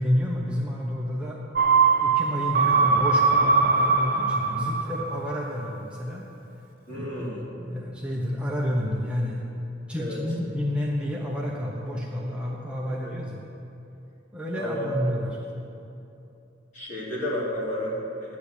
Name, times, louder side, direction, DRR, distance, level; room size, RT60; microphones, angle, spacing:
voice 1, 0.0-1.4 2.0-6.2 6.9-13.4 14.3-15.3, left 1 dB, 5° right, -4 dB, 1.0 m, -30 dB
sound 1, 1.6-5.3 5.6-5.7, right 4 dB, 50° right, 0.7 m, -21 dB
voice 2, 6.9-7.5 9.9-10.2 12.8-13.1 14.6-14.9 15.2-15.3 16.7-18.4, left 1 dB, 40° left, -6 dB, 3.0 m, -32 dB
11.0 x 7.3 x 8.4 m, 2.8 s
head